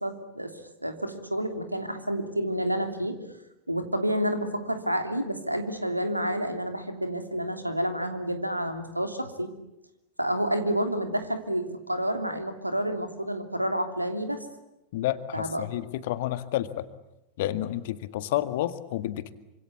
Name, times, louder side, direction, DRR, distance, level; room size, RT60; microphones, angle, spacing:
voice 1, 0.0-3.2 3.7-9.5 10.2-14.4 15.3-15.6, equal, 90° right, 7 dB, 3.0 m, -29 dB
voice 2, 14.9-16.9 17.4-19.4, left 14 dB, 50° left, 13 dB, 1.8 m, -30 dB
27.0 x 26.0 x 8.4 m, 0.90 s
figure-of-eight pair, 90°, 0 cm